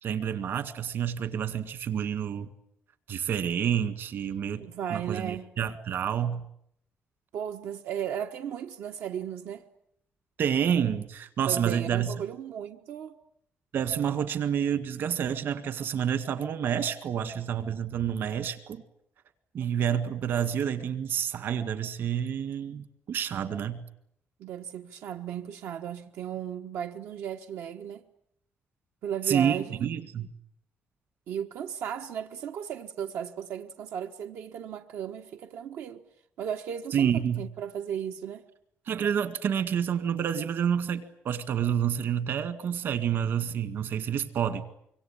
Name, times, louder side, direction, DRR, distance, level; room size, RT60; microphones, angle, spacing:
voice 1, 0.0-2.5 3.1-6.4 10.4-12.1 13.7-18.8 19.5-23.8 29.3-30.3 36.9-37.4 38.9-44.6, right 8 dB, 55° right, 1.9 m, -29 dB
voice 2, 4.6-5.5 7.3-9.6 11.5-13.1 24.4-28.0 29.0-29.8 31.3-36.0 36.4-38.4, right 9 dB, 85° right, 1.4 m, -35 dB
25.5 x 24.0 x 8.8 m
cardioid pair, 170°, 4 cm